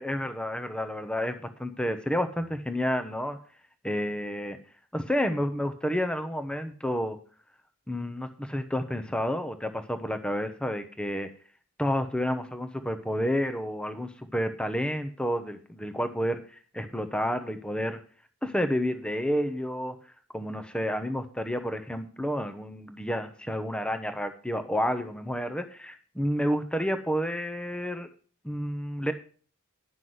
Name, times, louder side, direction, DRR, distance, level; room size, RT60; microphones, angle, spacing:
voice 1, 0.0-3.4 3.8-4.6 4.9-7.2 7.9-11.3 11.8-16.4 16.7-18.0 18.4-19.9 20.3-28.1 28.4-29.1, equal, 5° left, 8 dB, 0.8 m, -30 dB
11.0 x 5.9 x 7.8 m, 0.42 s
head